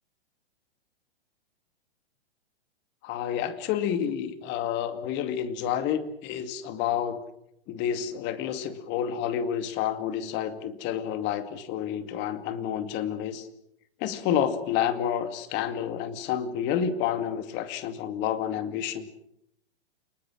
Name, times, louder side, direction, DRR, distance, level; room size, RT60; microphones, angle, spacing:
voice 1, 3.0-7.2 7.7-13.5 14.0-19.1, left 9 dB, 35° left, 10 dB, 2.3 m, -29 dB
29.0 x 20.0 x 6.3 m, 0.76 s
hypercardioid pair, 125°, 31 cm